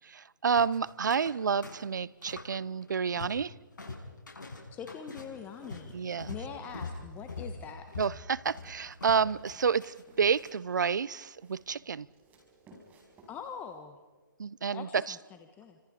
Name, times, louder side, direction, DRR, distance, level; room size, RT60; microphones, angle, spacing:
voice 1, 0.0-3.5 5.9-6.3 8.0-12.1 14.4-15.2, right 6 dB, 65° right, 0.8 m, -29 dB
sound 1, 0.6-1.4 1.6-2.5 2.8-3.5 3.8-10.5, left 3 dB, 70° left, 6.6 m, -43 dB
voice 2, 4.7-5.9 6.3-7.9 13.3-14.0 14.7-15.2 15.6-15.8, left 7 dB, 15° left, 1.4 m, -43 dB
sound 2, 5.2-7.7 8.4-13.2, right 5 dB, 35° right, 3.7 m, -63 dB
sound 3, 8.3-8.8 9.4-10.5 11.2-13.8, right 1 dB, 15° right, 5.2 m, -60 dB
30.0 x 25.5 x 5.2 m
figure-of-eight pair, 140°, 11 cm